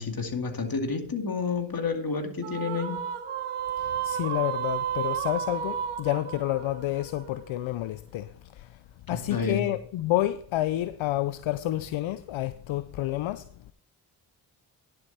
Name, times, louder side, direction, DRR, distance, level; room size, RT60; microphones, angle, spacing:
voice 1, 0.0-3.0 9.1-9.7, left 4 dB, 45° left, 2.5 m, -30 dB
sound 1, 2.4-7.9, right 9 dB, 80° right, 1.2 m, -32 dB
voice 2, 4.0-8.3 8.6-8.7 9.1-13.4, left 14 dB, 70° left, 0.6 m, -29 dB
10.5 x 7.7 x 4.2 m
supercardioid pair, 45°, 50 cm